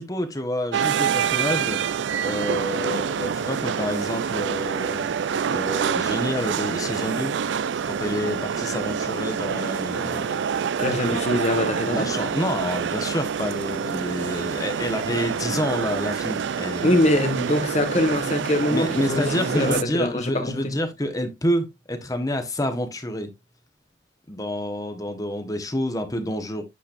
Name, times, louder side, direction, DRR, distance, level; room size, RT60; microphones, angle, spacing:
voice 1, 0.0-1.8 2.2-5.1 5.5-7.3 7.8-10.4 11.1-11.2 11.9-17.0 18.7-23.3 24.3-26.6, left 1 dB, 20° left, 1.0 m, -28 dB
sound 1, 0.7-19.8, right 7 dB, 80° right, 0.4 m, -27 dB
voice 2, 10.8-12.1 16.8-20.8, left 1 dB, 40° left, 1.4 m, -23 dB
8.6 x 5.1 x 2.5 m
head